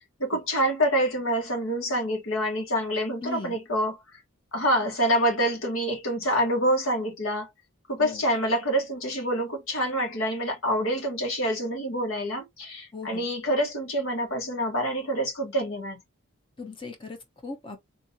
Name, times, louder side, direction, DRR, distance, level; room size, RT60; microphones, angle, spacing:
voice 1, 0.2-4.0 4.5-7.5 7.9-16.0, equal, 80° left, 1.7 m, -26 dB
voice 2, 3.2-3.6 8.0-8.2 12.9-13.2 16.6-17.2 17.4-17.8, left 4 dB, 25° left, 0.8 m, -38 dB
3.7 x 2.7 x 2.7 m
head